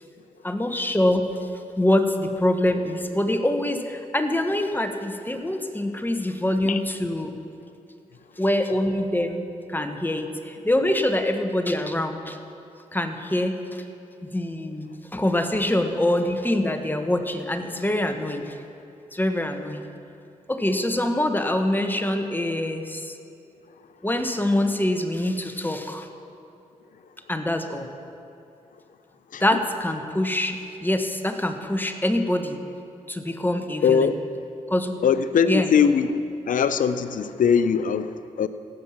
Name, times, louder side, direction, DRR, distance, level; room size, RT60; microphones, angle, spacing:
voice 1, 0.4-1.3 1.8-7.3 8.4-12.4 12.9-13.8 14.2-18.5 19.1-19.9 20.5-23.2 24.0-26.1 27.3-27.9 29.4-32.6 33.1-34.1 34.7-35.0 35.5-35.7, left 1 dB, 15° left, 6 dB, 1.3 m, -25 dB
voice 2, 33.8-34.2 35.0-36.2 36.5-38.5, left 7 dB, 70° left, 12 dB, 0.6 m, -21 dB
17.0 x 7.5 x 5.9 m, 2.6 s
supercardioid pair, 45°, 14 cm